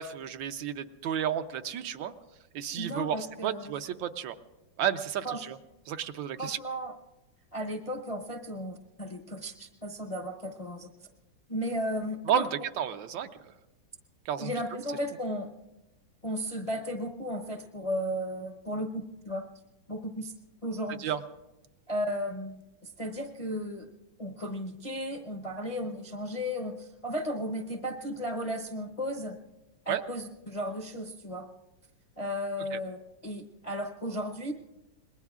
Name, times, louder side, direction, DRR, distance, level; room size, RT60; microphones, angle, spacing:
voice 1, 0.0-2.1 2.5-4.3 4.8-5.6 5.9-6.6 12.3-13.3 14.3-14.8 21.0-21.2 29.9-30.0 32.7-32.8, right 9 dB, 80° right, 8 dB, 1.4 m, -32 dB
voice 2, 2.7-3.7 5.2-5.4 6.4-6.9 7.5-10.9 11.5-12.5 14.4-15.5 16.2-19.5 19.9-20.3 20.6-21.1 21.9-23.9 24.2-29.4 29.8-31.5 32.2-33.0 33.2-34.5, equal, 35° left, 1 dB, 0.5 m, -35 dB
27.0 x 21.0 x 2.4 m, 1.0 s
omnidirectional pair, 2.1 m